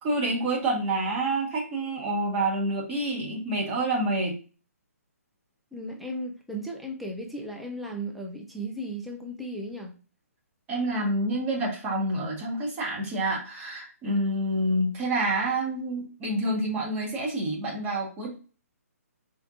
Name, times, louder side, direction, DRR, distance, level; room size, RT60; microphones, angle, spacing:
voice 1, 0.0-4.4 10.7-18.3, right 1 dB, 20° right, 1.2 m, -28 dB
voice 2, 5.7-10.0, right 1 dB, ahead, 0.4 m, -36 dB
4.4 x 2.5 x 2.4 m
hypercardioid pair, 145°, 9 cm